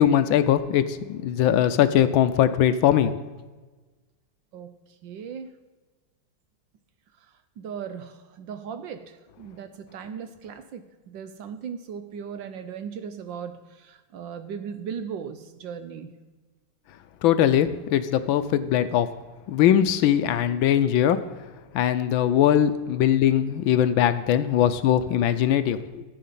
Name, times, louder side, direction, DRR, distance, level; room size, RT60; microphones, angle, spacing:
voice 1, 0.0-3.2 17.2-19.1 19.5-21.2 21.7-26.0, left 10 dB, 75° left, 12 dB, 1.3 m, -21 dB
voice 2, 5.0-5.5 7.2-16.2, right 7 dB, 70° right, 10 dB, 1.3 m, -38 dB
14.5 x 8.6 x 5.8 m, 1.3 s
omnidirectional pair, 2.4 m